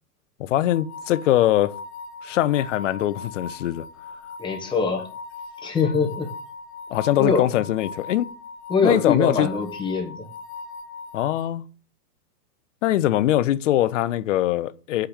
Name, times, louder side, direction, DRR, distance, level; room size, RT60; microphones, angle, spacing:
voice 1, 0.4-1.7 2.2-3.8 6.9-8.3 8.8-9.5 11.1-11.6 12.8-15.1, left 13 dB, 50° left, 0.6 m, -22 dB
sound 1, 0.6-11.4, left 4 dB, 65° left, 2.0 m, -39 dB
voice 2, 4.4-5.1 5.6-6.3 7.2-7.5 8.7-10.3, left 4 dB, 10° left, 1.1 m, -23 dB
5.7 x 5.1 x 6.6 m
hypercardioid pair, 150°, 48 cm